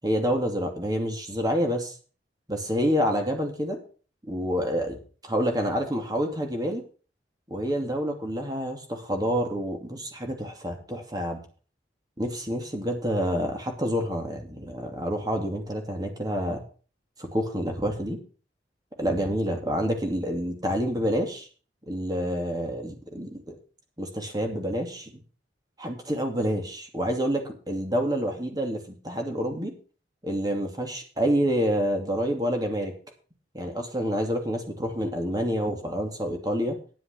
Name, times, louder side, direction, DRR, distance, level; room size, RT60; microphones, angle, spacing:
voice 1, 0.0-2.0 2.5-3.8 4.2-5.0 5.2-6.8 7.5-11.4 12.2-16.6 17.2-18.2 19.0-21.5 21.9-23.5 24.0-25.2 25.8-29.7 30.2-32.9 33.5-36.8, equal, 20° right, 3 dB, 2.6 m, -28 dB
10.5 x 7.7 x 6.9 m, 0.39 s
head